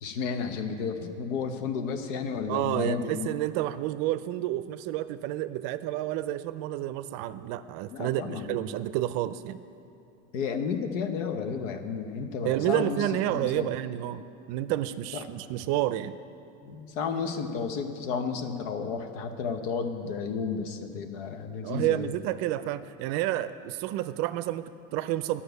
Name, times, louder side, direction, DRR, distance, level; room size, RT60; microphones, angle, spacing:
voice 1, 0.0-3.3 7.9-8.6 10.3-13.7 15.1-15.3 16.6-22.1, left 5 dB, 85° left, 7 dB, 1.0 m, -32 dB
voice 2, 2.5-9.6 12.4-16.2 21.6-25.4, right 14 dB, 60° right, 14 dB, 0.5 m, -30 dB
10.0 x 5.8 x 8.0 m, 2.8 s
supercardioid pair, 125°, 37 cm